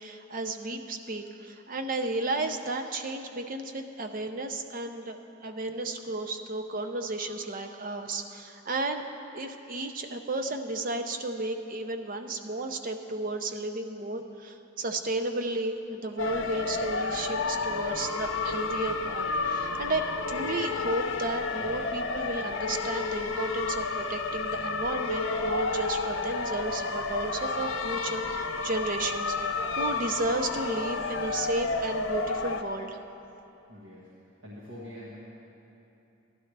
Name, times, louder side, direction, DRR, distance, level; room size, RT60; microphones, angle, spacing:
voice 1, 0.0-5.2 5.4-9.0 9.3-33.0, right 2 dB, 45° right, 6 dB, 0.6 m, -33 dB
sound 1, 16.2-32.6, left 3 dB, 65° left, 0.7 m, -31 dB
voice 2, 21.6-21.9 33.7-34.1 34.4-35.2, left 1 dB, 80° right, -7 dB, 1.6 m, -45 dB
16.0 x 11.5 x 3.3 m, 2.9 s
head